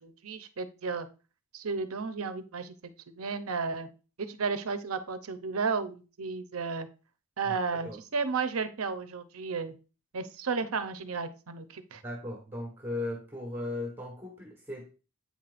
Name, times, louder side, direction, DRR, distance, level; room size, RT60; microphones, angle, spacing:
voice 1, 0.0-1.1 1.5-2.7 3.1-3.9 4.2-6.9 7.4-9.7 10.1-12.0, right 4 dB, 75° right, 10 dB, 0.7 m, -33 dB
voice 2, 7.4-8.0 12.0-14.9, left 2 dB, 10° right, -2 dB, 1.4 m, -37 dB
8.5 x 5.7 x 2.5 m, 0.33 s
head